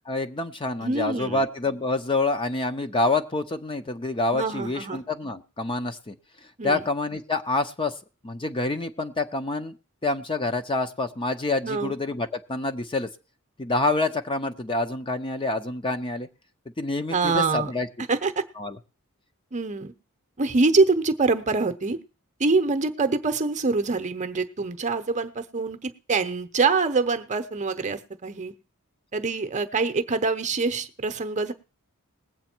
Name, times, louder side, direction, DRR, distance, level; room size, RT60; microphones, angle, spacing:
voice 1, 0.1-6.2 6.6-7.9 8.2-9.8 10.0-13.1 13.6-16.3 16.8-17.9 18.6-18.8, left 2 dB, 25° left, 8 dB, 0.7 m, -27 dB
voice 2, 0.8-1.4 4.3-5.0 6.6-6.8 11.6-12.0 17.1-17.7 18.1-18.4 19.5-19.9 20.4-22.0 22.4-28.5 29.1-31.5, right 4 dB, 35° right, 9 dB, 0.8 m, -25 dB
19.5 x 8.0 x 4.5 m, 0.36 s
head